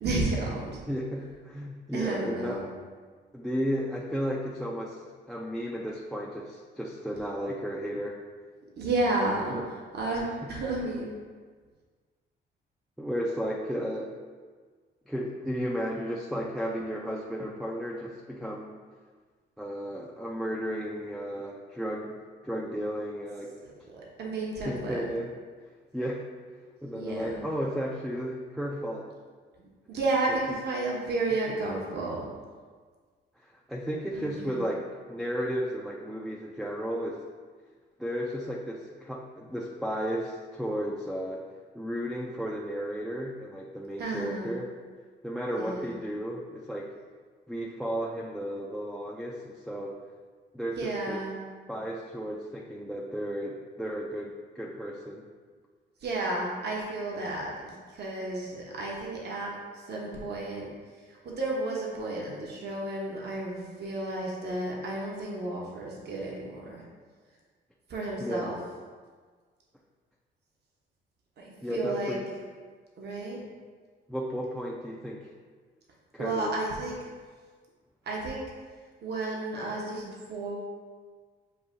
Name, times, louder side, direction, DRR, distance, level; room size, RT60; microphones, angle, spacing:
voice 1, 0.0-0.8 1.9-2.6 8.8-9.6 9.9-11.1 23.6-25.1 26.9-27.4 29.6-32.3 34.1-34.7 44.0-44.6 45.6-46.0 50.8-51.4 56.0-59.5 59.9-60.7 61.1-66.8 67.9-68.6 71.4-72.2 73.0-73.4 76.2-77.0 78.0-78.4 79.0-80.7, right 2 dB, 55° right, -3 dB, 1.0 m, -32 dB
voice 2, 0.9-2.6 3.3-5.0 5.3-8.2 9.5-9.6 13.0-14.1 15.1-18.7 19.6-22.2 22.4-23.5 24.6-25.3 25.9-26.3 26.8-29.1 33.7-37.2 38.0-41.4 41.7-44.7 45.2-46.9 47.5-50.0 50.5-51.2 51.7-55.2 68.2-68.6 71.6-72.3 74.1-75.3 76.1-76.5, equal, ahead, -2 dB, 0.4 m, -33 dB
7.1 x 2.7 x 2.6 m, 1.5 s
cardioid pair, 90°, 20 cm